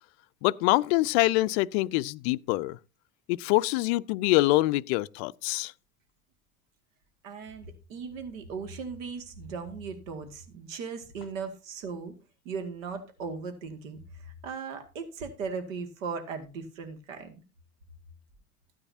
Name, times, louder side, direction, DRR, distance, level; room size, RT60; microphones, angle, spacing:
voice 1, 0.4-2.8 3.3-5.7, left 19 dB, 50° left, 0.5 m, -25 dB
voice 2, 7.2-12.1 12.4-17.4, right 5 dB, 65° right, 2.2 m, -38 dB
14.5 x 9.8 x 2.8 m
figure-of-eight pair, 80°, 42 cm